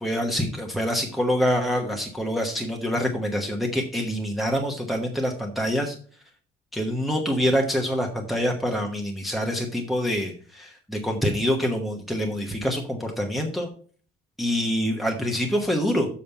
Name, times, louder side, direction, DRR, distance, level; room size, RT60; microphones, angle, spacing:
voice 1, 0.0-6.0 6.7-13.7 14.4-16.1, equal, ahead, 1 dB, 1.0 m, -26 dB
7.3 x 5.2 x 6.9 m, 0.43 s
cardioid pair, 165°, 18 cm